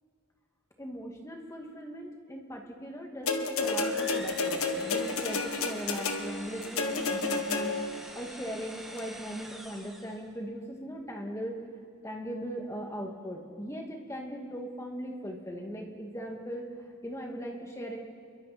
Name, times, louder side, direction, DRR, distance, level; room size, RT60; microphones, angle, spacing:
voice 1, 0.8-7.8 8.1-11.6 12.0-18.0, equal, 15° left, 1 dB, 2.3 m, -39 dB
sound 1, 3.3-8.0 9.0-9.1, left 3 dB, 85° left, 1.6 m, -31 dB
sound 2, 3.6-10.3, equal, ahead, 1.6 m, -45 dB
29.0 x 23.0 x 4.4 m, 2.3 s
head